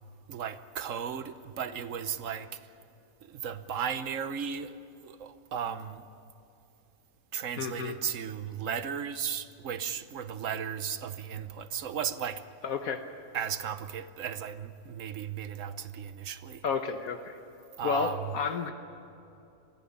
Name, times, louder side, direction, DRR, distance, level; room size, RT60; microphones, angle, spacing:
voice 1, 0.3-2.6 3.2-4.7 5.0-6.0 7.3-12.4 13.3-16.6 17.8-18.2, right 8 dB, 60° right, 12 dB, 1.2 m, -35 dB
voice 2, 7.6-8.0 12.6-13.0 16.6-17.4 17.8-18.7, left 6 dB, 75° left, 6 dB, 1.4 m, -31 dB
23.5 x 15.5 x 10.0 m, 2.7 s
omnidirectional pair, 1.5 m